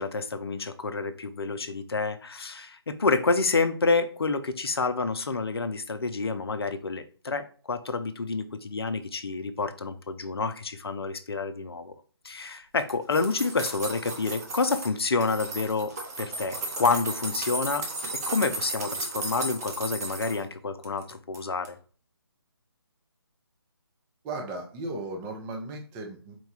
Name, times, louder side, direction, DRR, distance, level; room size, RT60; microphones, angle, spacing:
voice 1, 0.0-11.9 12.2-15.9 16.2-17.9 18.3-21.8, left 4 dB, 65° left, 10 dB, 0.6 m, -28 dB
sound 1, 12.8-14.9 15.2-20.4 20.8-21.4 21.6-21.7, right 2 dB, 35° right, 0.9 m, -34 dB
voice 2, 24.2-26.4, right 2 dB, 15° right, 1 dB, 0.6 m, -36 dB
4.5 x 2.3 x 4.2 m, 0.40 s
figure-of-eight pair, 150°, 14 cm